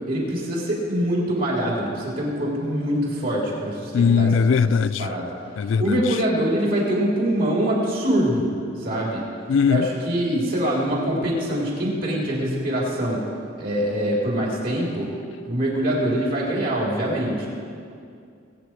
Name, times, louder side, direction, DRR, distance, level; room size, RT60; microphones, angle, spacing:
voice 1, 0.1-4.3 5.0-5.3 5.8-8.5 8.8-9.2 9.7-13.2 13.6-15.1 15.4-17.5, right 1 dB, 50° right, 3.6 m, -24 dB
voice 2, 3.9-5.1 5.6-6.2 9.5-9.9, left 6 dB, 75° left, 0.3 m, -20 dB
21.0 x 8.7 x 4.7 m
head